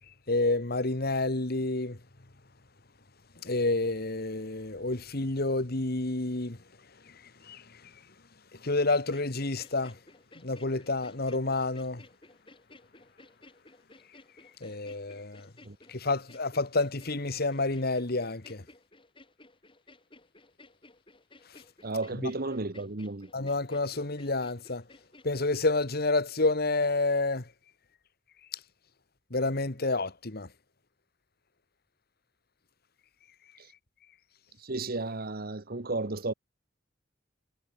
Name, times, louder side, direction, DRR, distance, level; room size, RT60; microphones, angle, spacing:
voice 1, 0.3-2.0 3.4-6.6 7.5-7.6 8.6-10.0 10.4-12.0 14.6-15.5 15.9-18.6 22.2-22.3 23.3-24.8 25.2-27.4 29.3-30.5, left 2 dB, 55° left, 1.9 m, -29 dB
sound 1, 8.9-25.6, left 2 dB, 30° left, 5.4 m, -56 dB
voice 2, 21.8-23.3 34.6-36.3, right 2 dB, 50° right, 1.3 m, -33 dB
head